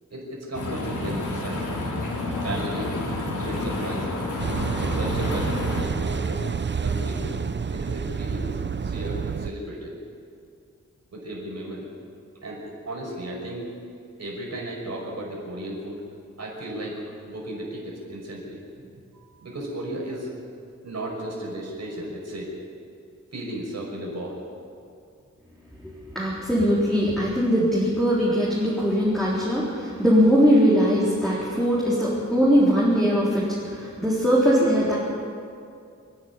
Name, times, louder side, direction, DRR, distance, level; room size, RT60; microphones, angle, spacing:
voice 1, 0.1-1.8 2.4-3.0 3.3-4.2 4.8-6.5 6.8-7.3 7.7-10.0 11.1-11.9 12.4-13.7 14.2-16.0 16.4-20.3 20.8-22.6 23.3-24.4, right 1 dB, 60° right, -3 dB, 5.9 m, -35 dB
sound 1, 0.5-5.8, left 2 dB, 85° left, 4.0 m, -29 dB
Car passing by / Idling / Accelerating revving vroom, 4.4-9.5, right 6 dB, 40° right, 0.7 m, -28 dB
voice 2, 25.8-35.0, equal, ahead, -7 dB, 3.9 m, -21 dB
26.5 x 10.0 x 9.7 m, 2.4 s
wide cardioid pair, 125°, 30 cm